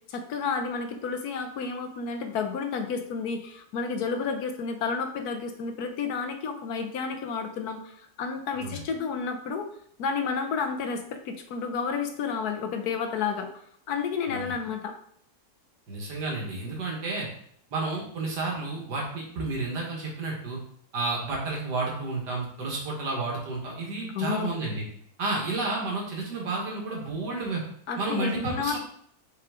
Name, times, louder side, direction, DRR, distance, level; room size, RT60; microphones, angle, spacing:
voice 1, 0.1-9.7 10.0-13.5 13.9-15.0 24.1-24.5 27.9-28.8, left 5 dB, 70° left, 6 dB, 1.2 m, -31 dB
voice 2, 15.9-17.3 17.7-20.6 20.9-24.8 25.2-27.6 28.0-28.8, right 3 dB, 85° right, -2 dB, 2.2 m, -31 dB
5.9 x 4.8 x 3.7 m, 0.65 s
omnidirectional pair, 1.7 m